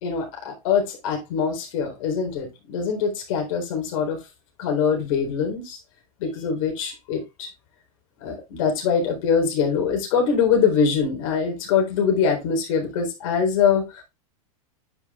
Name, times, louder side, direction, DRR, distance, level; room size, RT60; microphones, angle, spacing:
voice 1, 0.0-4.2 4.6-5.8 6.2-7.5 8.2-14.0, left 6 dB, 65° left, 3.8 m, -23 dB
9.7 x 5.5 x 2.4 m
supercardioid pair, 130°, 19 cm